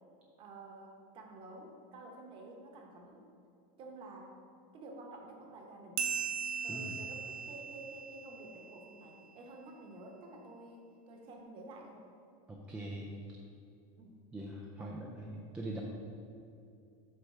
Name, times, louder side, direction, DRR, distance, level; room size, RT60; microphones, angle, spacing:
voice 1, 0.4-3.3 3.8-4.4 4.7-6.0 6.6-12.0 14.0-14.3 14.8-14.9, right 2 dB, 30° right, 1 dB, 0.9 m, -51 dB
sound 1, 6.0-9.0, right 6 dB, 60° right, 0.5 m, -39 dB
voice 2, 12.5-13.1 14.3-15.8, right 1 dB, 5° right, -3 dB, 0.3 m, -42 dB
7.9 x 3.5 x 5.6 m, 2.6 s
supercardioid pair, 175°, 18 cm